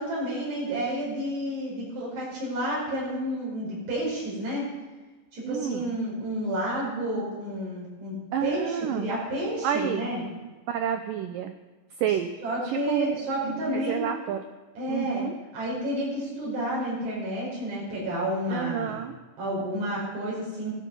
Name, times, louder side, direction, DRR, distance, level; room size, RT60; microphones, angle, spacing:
voice 1, 0.0-4.7 5.3-8.2 8.4-10.2 12.4-14.0 14.8-15.2 15.5-19.0 19.4-20.7, equal, 75° right, -5 dB, 7.4 m, -30 dB
voice 2, 5.4-5.9 8.3-9.1 9.6-10.1 10.7-11.5 12.0-12.3 12.6-13.2 13.4-14.4 14.9-15.3 18.5-19.1, right 9 dB, 90° right, 7 dB, 1.9 m, -29 dB
17.0 x 15.5 x 5.5 m, 1.2 s
omnidirectional pair, 5.0 m